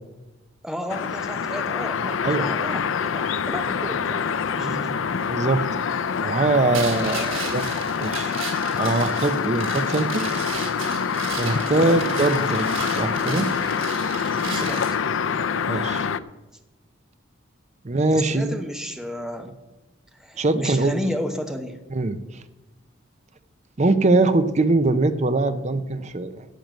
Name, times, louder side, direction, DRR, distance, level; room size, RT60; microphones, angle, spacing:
voice 1, 0.6-5.0 11.6-12.0 14.4-14.9 18.1-19.5 20.1-21.8, equal, 5° right, 6 dB, 0.9 m, -32 dB
sound 1, 0.9-16.2, left 6 dB, 75° left, 0.5 m, -26 dB
voice 2, 5.3-5.6 6.2-7.7 8.0-8.4 8.8-10.3 11.4-13.5 15.7-16.1 17.8-18.6 20.4-20.9 21.9-22.2 23.8-26.5, right 2 dB, 35° right, 11 dB, 0.6 m, -22 dB
sound 2, 6.7-15.0, right 5 dB, 85° right, 2.5 m, -35 dB
10.5 x 7.6 x 7.5 m, 1.1 s
head